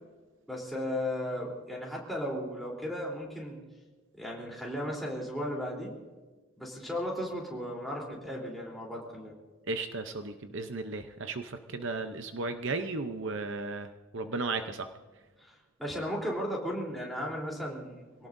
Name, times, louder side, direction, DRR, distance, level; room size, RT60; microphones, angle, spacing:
voice 1, 0.5-3.6 4.1-5.9 6.6-9.3 15.4-18.3, equal, ahead, -3 dB, 3.5 m, -35 dB
voice 2, 9.7-14.9, right 3 dB, 55° right, 8 dB, 0.8 m, -35 dB
25.0 x 18.0 x 2.7 m, 1.3 s
head